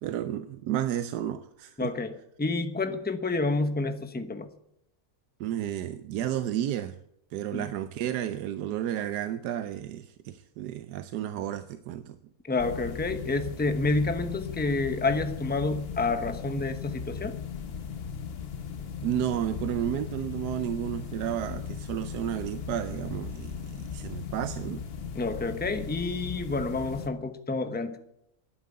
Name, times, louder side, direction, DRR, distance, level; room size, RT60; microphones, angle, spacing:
voice 1, 0.0-1.9 5.4-7.0 7.3-12.2 19.0-24.8, right 11 dB, 85° right, 11 dB, 1.2 m, -32 dB
voice 2, 1.8-2.1 2.4-4.5 7.5-7.7 12.5-17.4 25.1-28.0, left 3 dB, 10° left, 8 dB, 0.7 m, -29 dB
sound 1, 12.6-27.1, left 6 dB, 45° left, 1.0 m, -37 dB
11.5 x 9.3 x 8.5 m, 0.79 s
omnidirectional pair, 1.7 m